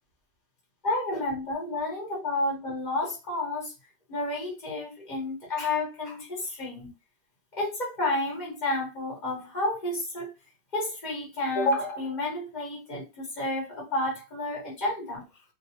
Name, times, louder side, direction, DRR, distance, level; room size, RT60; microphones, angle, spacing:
voice 1, 0.8-3.7 4.1-6.9 7.5-10.3 10.7-15.2, left 2 dB, 25° left, 1.1 m, -30 dB
3.8 x 2.4 x 2.8 m
omnidirectional pair, 2.2 m